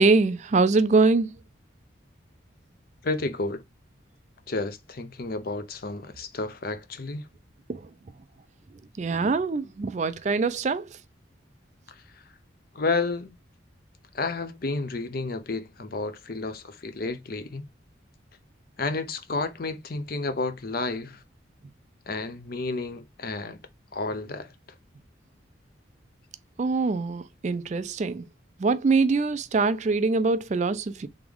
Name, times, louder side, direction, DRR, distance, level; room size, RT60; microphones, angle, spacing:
voice 1, 0.0-1.4 7.7-7.9 9.0-11.0 26.6-28.3 28.6-31.1, right 3 dB, 35° right, 0.3 m, -23 dB
voice 2, 3.0-3.6 4.5-7.3 11.9-12.0 12.7-13.3 14.1-17.7 18.8-21.2 22.1-23.6 23.9-24.5, left 3 dB, 50° left, 0.6 m, -31 dB
3.5 x 3.4 x 3.5 m
head